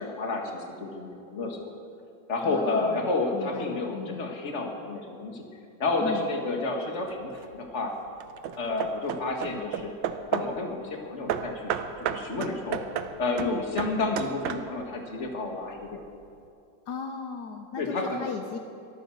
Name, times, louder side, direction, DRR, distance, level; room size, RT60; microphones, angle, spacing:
voice 1, 0.0-1.7 2.3-5.4 5.8-8.0 8.6-9.9 10.3-12.8 13.2-16.0 17.8-18.2, left 3 dB, 40° left, 1 dB, 2.1 m, -30 dB
voice 2, 2.4-3.1 3.3-4.3 6.0-6.3 13.4-13.6 16.9-18.6, left 6 dB, 70° left, 5 dB, 1.4 m, -36 dB
Hammer / Wood, 7.1-7.6 8.2-10.6 11.3-14.9, right 8 dB, 80° right, 1.4 m, -33 dB
23.0 x 9.1 x 6.3 m, 2.5 s
omnidirectional pair, 2.0 m